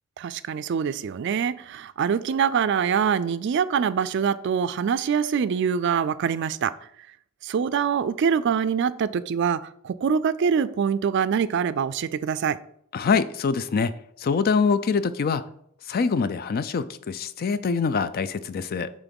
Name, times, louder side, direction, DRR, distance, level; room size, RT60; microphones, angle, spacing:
voice 1, 0.2-6.8 7.4-12.6, right 7 dB, 60° right, 0.3 m, -24 dB
voice 2, 12.9-13.9 14.2-15.4 15.9-18.9, left 5 dB, 50° left, 0.4 m, -24 dB
6.0 x 3.7 x 5.3 m
head